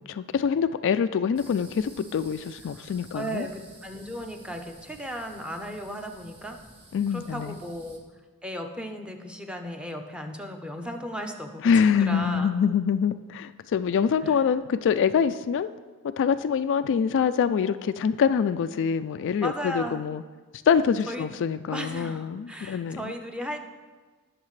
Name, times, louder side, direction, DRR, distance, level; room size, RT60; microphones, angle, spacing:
voice 1, 0.1-3.5 6.9-7.6 11.6-15.7 16.2-20.2 20.7-23.1, left 7 dB, 55° left, 11 dB, 0.3 m, -25 dB
sound 1, 1.4-8.0, right 1 dB, 25° right, 1.5 m, -52 dB
voice 2, 3.1-6.6 7.1-8.0 8.4-12.5 14.2-14.4 19.4-20.1 21.1-21.3 21.7-23.6, equal, 5° right, 4 dB, 0.7 m, -36 dB
20.0 x 6.6 x 3.2 m, 1.4 s
head